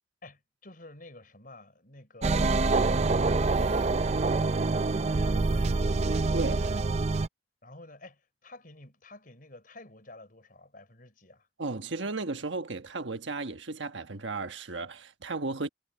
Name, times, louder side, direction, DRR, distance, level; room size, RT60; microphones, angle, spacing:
voice 1, 0.2-6.2 6.5-6.9 7.6-11.5, left 2 dB, 45° left, 4.5 m, -50 dB
sound 1, 2.2-7.3, right 3 dB, 35° right, 0.5 m, -26 dB
voice 2, 11.6-15.7, right 3 dB, 75° right, 1.3 m, -34 dB
head